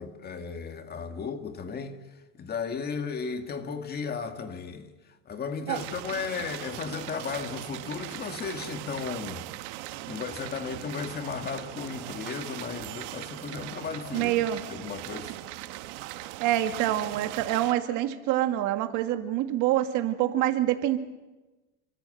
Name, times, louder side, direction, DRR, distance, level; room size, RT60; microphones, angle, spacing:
voice 1, 0.0-2.0 2.3-4.9 5.3-9.5 10.1-14.3 14.7-15.4, left 5 dB, 25° left, 2.0 m, -35 dB
sound 1, 5.7-17.7, right 17 dB, 70° right, 1.5 m, -40 dB
voice 2, 14.1-14.6 16.4-21.0, right 13 dB, 55° right, 2.0 m, -26 dB
27.5 x 24.5 x 7.9 m
cardioid pair, 150°, 36 cm